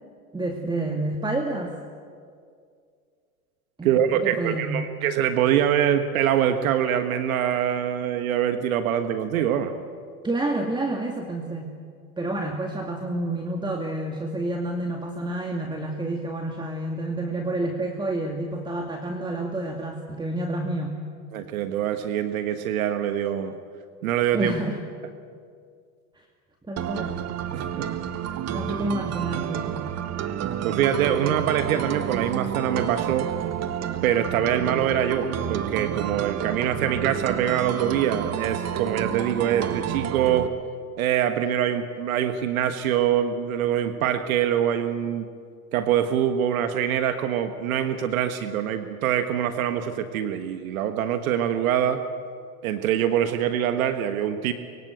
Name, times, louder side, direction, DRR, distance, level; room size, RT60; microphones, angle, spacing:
voice 1, 0.3-1.7 3.8-4.9 10.2-11.7 12.2-21.0 24.3-24.8 26.7-27.2 28.5-29.7, right 2 dB, 10° right, 3 dB, 2.2 m, -29 dB
voice 2, 3.8-9.7 21.3-23.5 24.0-24.5 27.5-27.9 30.6-33.3 34.0-40.5 41.0-45.3 45.7-52.0 52.6-54.5, right 10 dB, 70° right, 8 dB, 1.5 m, -24 dB
sound 1, 26.8-40.5, right 9 dB, 35° right, 1.5 m, -30 dB
24.0 x 23.5 x 8.0 m, 2.2 s
hypercardioid pair, 90°, 43 cm